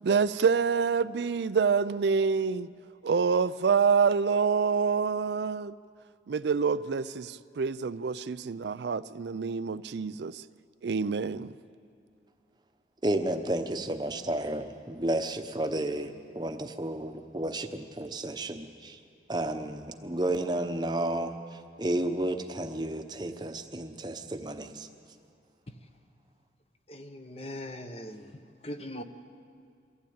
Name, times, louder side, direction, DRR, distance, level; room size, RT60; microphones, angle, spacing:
voice 1, 0.0-2.7 3.0-5.8 6.3-10.4 10.8-11.5, right 5 dB, 75° right, 0.4 m, -27 dB
voice 2, 13.0-19.0 19.3-24.9, right 1 dB, 25° right, 0.9 m, -32 dB
voice 3, 26.9-28.4 28.6-29.0, left 1 dB, 35° left, 1.0 m, -40 dB
23.0 x 15.5 x 8.8 m
head